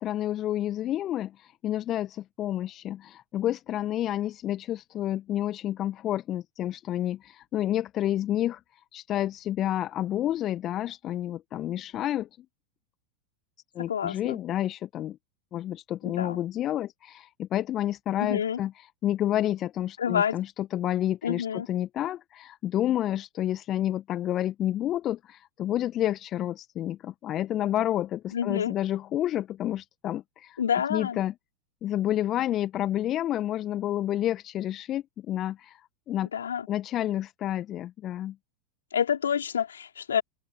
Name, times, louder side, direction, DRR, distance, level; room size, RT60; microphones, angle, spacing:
voice 1, 0.0-8.6 8.9-12.3 13.8-15.2 15.5-18.7 19.0-30.6 30.9-31.3 31.8-35.8 36.1-36.3 36.7-38.4, left 12 dB, 35° left, 1.8 m, -29 dB
voice 2, 13.9-14.4 16.1-16.4 18.2-18.6 20.0-20.4 21.2-21.7 28.3-28.7 30.6-31.2 36.3-36.7 38.9-40.2, left 8 dB, 70° left, 5.5 m, -28 dB
figure-of-eight pair, 90°, 0 cm